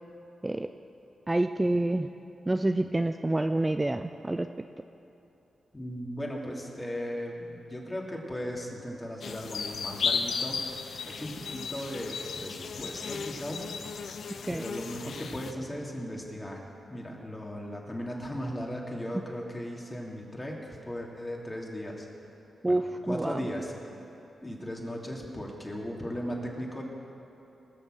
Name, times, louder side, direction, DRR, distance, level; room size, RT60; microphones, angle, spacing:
voice 1, 1.3-2.1 2.5-4.5 14.5-14.6 22.6-23.4, right 2 dB, 20° right, 8 dB, 0.5 m, -27 dB
voice 2, 5.7-13.9 14.5-16.6 16.9-22.1 22.6-23.7 24.4-26.8, equal, 25° left, -1 dB, 2.9 m, -37 dB
sound 1, 9.2-15.5, left 5 dB, 70° left, 0.6 m, -35 dB
20.0 x 6.9 x 6.6 m, 2.9 s
supercardioid pair, 45°, 0 cm